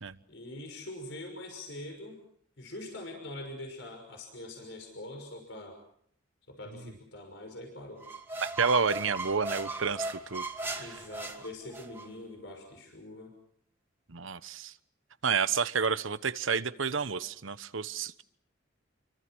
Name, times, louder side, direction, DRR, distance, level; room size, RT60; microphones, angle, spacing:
voice 1, 0.3-2.2 2.6-5.8 6.5-8.0 10.8-13.3, left 1 dB, 65° left, 4 dB, 6.1 m, -43 dB
sound 1, 8.0-12.1, right 2 dB, 10° right, 2.5 m, -37 dB
voice 2, 8.4-10.4 10.7-11.0 14.1-14.7 15.2-18.2, right 5 dB, 85° right, 13 dB, 1.1 m, -30 dB
29.5 x 24.0 x 6.3 m, 0.66 s
head